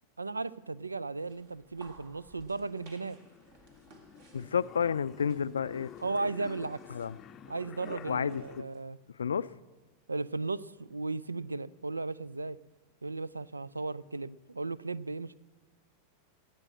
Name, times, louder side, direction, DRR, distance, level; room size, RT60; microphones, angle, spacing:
voice 1, 0.2-3.2 6.0-6.8 7.5-9.0 10.1-12.6 13.0-15.4, right 3 dB, 80° right, 21 dB, 0.3 m, -36 dB
sound 1, 1.2-8.8, right 3 dB, 50° right, 2.0 m, -59 dB
sound 2, 2.2-8.6, left 9 dB, 25° left, 0.6 m, -50 dB
voice 2, 4.3-5.9 6.9-7.2 8.1-8.6 9.1-9.5, left 7 dB, 70° left, 17 dB, 0.4 m, -31 dB
18.5 x 7.6 x 7.7 m, 1.3 s
figure-of-eight pair, 90°, 0 cm